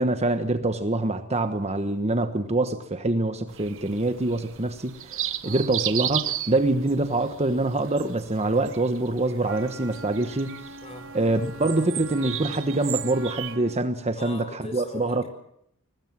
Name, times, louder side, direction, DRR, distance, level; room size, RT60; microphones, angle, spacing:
voice 1, 0.0-10.6 11.1-15.2, right 2 dB, 30° right, 8 dB, 1.3 m, -25 dB
sound 1, 3.5-13.6, right 11 dB, 60° right, 1.1 m, -35 dB
Wind instrument woodwind instrument, 9.4-13.9, right 2 dB, 80° right, 3.5 m, -43 dB
voice 2, 14.2-15.3, left 2 dB, 30° left, 7 dB, 4.8 m, -40 dB
23.0 x 19.5 x 7.5 m, 0.70 s
head